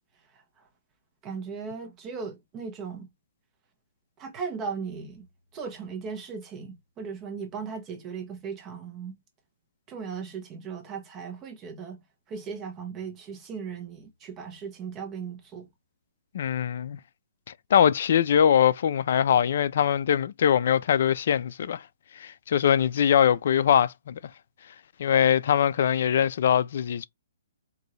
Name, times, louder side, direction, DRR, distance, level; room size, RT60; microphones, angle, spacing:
voice 1, 1.2-3.1 4.2-5.3 5.5-9.2 9.9-12.0 12.3-15.7, right 5 dB, 15° right, 1.0 m, -37 dB
voice 2, 16.3-17.0 17.7-21.8 22.2-24.2 25.0-27.1, left 9 dB, 50° left, 0.4 m, -22 dB
3.9 x 2.7 x 3.1 m
hypercardioid pair, 170°, 0 cm